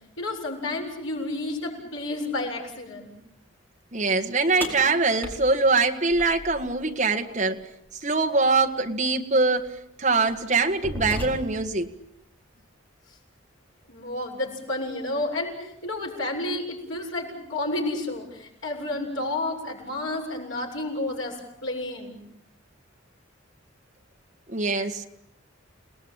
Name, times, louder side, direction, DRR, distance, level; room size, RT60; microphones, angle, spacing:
voice 1, 0.2-3.1 13.9-22.2, left 2 dB, 80° left, 1 dB, 7.4 m, -31 dB
voice 2, 3.9-7.7 8.0-11.9 24.5-25.0, right 3 dB, 35° right, 3 dB, 1.8 m, -23 dB
sound 1, 4.6-6.8 8.6-8.7 9.6-9.8 10.3-11.8, equal, 10° left, 4.7 m, -35 dB
30.0 x 19.0 x 9.0 m, 0.80 s
head